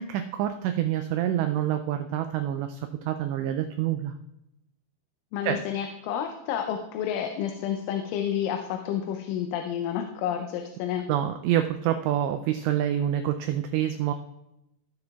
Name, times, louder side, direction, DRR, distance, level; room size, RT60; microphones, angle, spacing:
voice 1, 0.0-4.2 5.4-5.6 11.1-14.1, right 11 dB, 90° right, 7 dB, 2.4 m, -27 dB
voice 2, 5.3-11.0, left 9 dB, 85° left, 5 dB, 3.1 m, -30 dB
18.5 x 6.8 x 2.4 m, 0.89 s
omnidirectional pair, 5.5 m